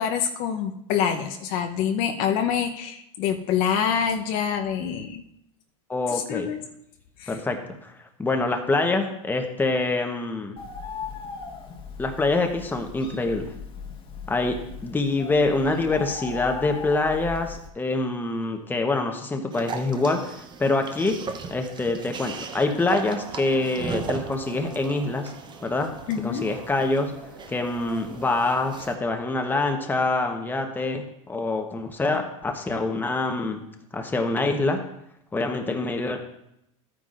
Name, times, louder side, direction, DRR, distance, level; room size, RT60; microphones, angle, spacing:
voice 1, 0.0-5.2 6.1-6.6 7.2-7.3 26.1-26.5, left 8 dB, 55° left, 5 dB, 0.9 m, -26 dB
voice 2, 5.9-6.5 7.3-7.9 8.2-10.6 12.0-13.5 14.3-14.6 14.8-21.2 21.5-25.3 25.6-25.9 26.2-27.1 27.5-33.6 33.9-34.8 35.3-36.2, left 3 dB, 10° left, 4 dB, 1.1 m, -25 dB
Bird, 10.6-17.7, left 5 dB, 30° left, 1.4 m, -38 dB
sound 1, 19.5-29.0, right 5 dB, 25° right, 0.8 m, -37 dB
sound 2, 22.3-30.3, right 5 dB, 75° right, 1.8 m, -45 dB
12.5 x 9.3 x 2.6 m, 0.80 s
hypercardioid pair, 110°, 18 cm